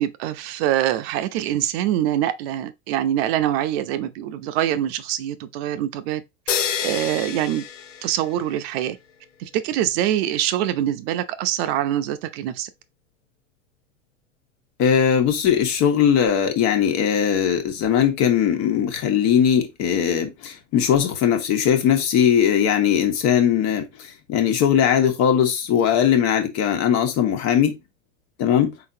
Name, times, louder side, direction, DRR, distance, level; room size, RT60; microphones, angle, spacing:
voice 1, 0.0-6.2 6.8-7.6 8.0-9.0 9.4-12.7, right 12 dB, 55° right, 0.7 m, -24 dB
sound 1, 6.5-8.6, left 7 dB, 85° left, 0.8 m, -28 dB
voice 2, 14.8-23.8 24.3-27.7 28.4-28.7, left 8 dB, 50° left, 1.4 m, -19 dB
4.1 x 3.9 x 2.8 m
hypercardioid pair, 95°, 36 cm